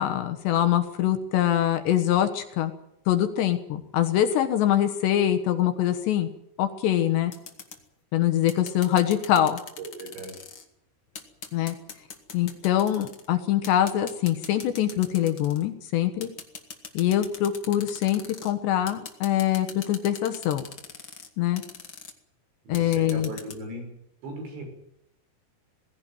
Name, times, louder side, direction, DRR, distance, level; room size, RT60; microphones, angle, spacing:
voice 1, 0.0-2.7 3.1-6.3 6.6-7.3 8.1-9.6 11.5-11.8 12.3-16.3 17.0-20.6 21.4-21.6 22.7-23.3, left 11 dB, 75° left, 8 dB, 3.4 m, -24 dB
sound 1, 7.3-7.8 8.5-10.6 11.1-13.3 13.6-15.6 16.2-18.5 18.9-21.3 21.6-22.1 22.7-23.6, left 5 dB, 40° left, 2.0 m, -41 dB
voice 2, 9.8-10.4 22.7-23.9 24.2-24.6, right 2 dB, 85° right, 4 dB, 8.4 m, -38 dB
20.0 x 16.5 x 9.1 m, 0.78 s
omnidirectional pair, 5.1 m